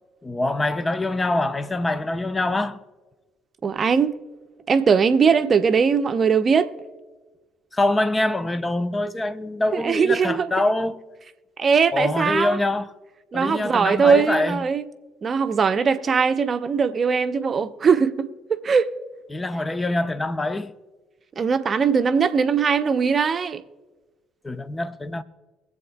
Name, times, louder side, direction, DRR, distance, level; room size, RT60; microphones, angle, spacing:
voice 1, 0.2-2.8 7.7-11.0 11.9-12.9 13.3-14.6 19.3-20.7 24.4-25.2, left 2 dB, 20° left, 0.8 m, -24 dB
voice 2, 3.6-4.2 4.7-6.7 9.7-10.5 11.6-12.6 13.3-14.9 15.2-18.9 21.4-23.6, right 6 dB, 40° right, 0.7 m, -20 dB
22.5 x 7.8 x 2.3 m
hypercardioid pair, 55°, 0 cm